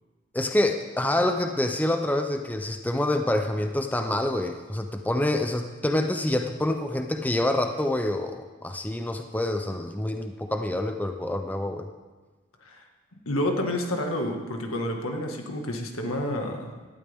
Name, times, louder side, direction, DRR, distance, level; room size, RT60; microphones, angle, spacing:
voice 1, 0.3-11.9, left 1 dB, 10° left, 5 dB, 0.5 m, -27 dB
voice 2, 13.3-16.7, left 1 dB, 90° left, 3 dB, 1.7 m, -29 dB
18.0 x 12.0 x 3.6 m, 1.3 s
head